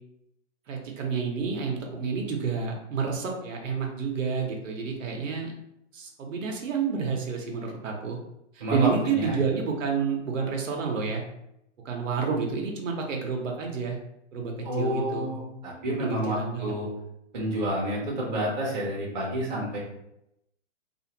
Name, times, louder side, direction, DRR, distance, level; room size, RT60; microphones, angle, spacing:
voice 1, 0.7-5.5 5.9-8.2 8.5-11.2 11.8-14.0 14.3-15.3 15.9-16.7, right 5 dB, 85° right, 1 dB, 0.8 m, -29 dB
voice 2, 8.6-9.4 14.6-16.9 17.3-19.8, right 1 dB, 35° right, -4 dB, 0.8 m, -29 dB
2.4 x 2.4 x 2.8 m, 0.82 s
hypercardioid pair, 175°, 38 cm